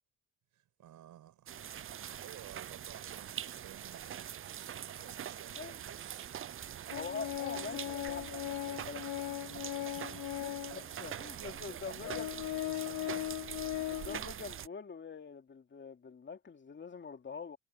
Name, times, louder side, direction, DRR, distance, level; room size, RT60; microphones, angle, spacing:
voice 1, 0.5-1.8 2.2-6.3 9.8-10.3 10.9-13.2, right 12 dB, 80° right, 5.7 m, -55 dB
sound 1, 1.5-14.7, right 10 dB, 45° right, 0.7 m, -44 dB
Organ, 6.9-10.8 11.5-11.6 12.0-14.2, left 15 dB, 75° left, 0.7 m, -38 dB
voice 2, 6.9-9.1 10.4-12.3 13.9-17.6, left 5 dB, 40° left, 2.8 m, -44 dB
cardioid pair, 90°, 30 cm